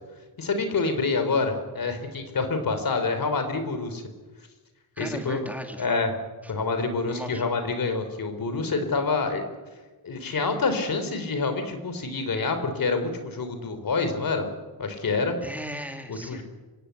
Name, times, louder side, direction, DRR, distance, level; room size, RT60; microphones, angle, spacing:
voice 1, 0.4-4.0 5.0-5.4 5.8-6.1 6.5-9.4 10.0-14.5 14.8-15.4 16.1-16.4, left 4 dB, 60° left, 8 dB, 3.5 m, -27 dB
voice 2, 5.0-6.0 6.4-6.5 7.1-7.5 15.4-16.4, equal, 5° right, 4 dB, 2.8 m, -37 dB
25.5 x 17.0 x 8.2 m, 1.3 s
cardioid pair, 95°, 38 cm